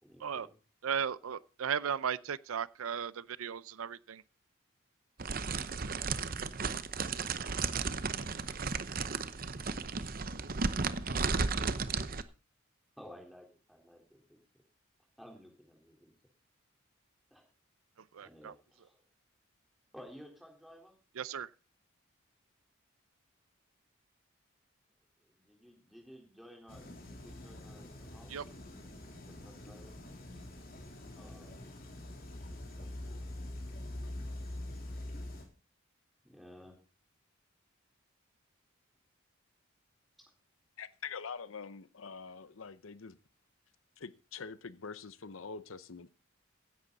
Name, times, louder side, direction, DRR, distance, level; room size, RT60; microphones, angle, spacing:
voice 1, 0.0-0.5 13.0-14.4 15.2-16.1 17.3-17.4 18.2-19.0 19.9-20.9 25.2-28.3 29.3-29.9 31.1-31.8 32.8-33.3 33.6-33.7 36.2-36.8 40.2-40.3, equal, ahead, 3.8 m, -55 dB
voice 2, 0.8-4.2 18.1-18.5 21.2-21.5 28.3-28.4, right 7 dB, 90° right, 0.5 m, -36 dB
sound 1, 5.2-12.2, right 4 dB, 45° right, 0.8 m, -34 dB
sound 2, 26.7-35.4, left 1 dB, 45° left, 3.4 m, -45 dB
voice 3, 40.8-43.2 44.0-46.1, left 5 dB, 75° left, 0.8 m, -45 dB
15.5 x 11.0 x 4.0 m
head